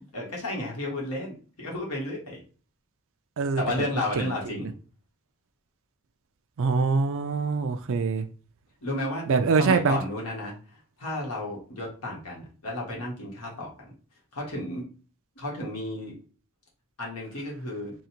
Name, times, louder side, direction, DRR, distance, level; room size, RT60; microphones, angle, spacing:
voice 1, 0.1-2.4 3.6-4.8 8.8-9.2 9.6-10.6 11.0-13.9 14.3-14.8 15.4-16.1 17.0-17.9, left 1 dB, 80° left, 1.6 m, -32 dB
voice 2, 6.6-8.3 9.3-10.0, right 4 dB, 60° right, 0.4 m, -24 dB
3.8 x 2.4 x 4.4 m
head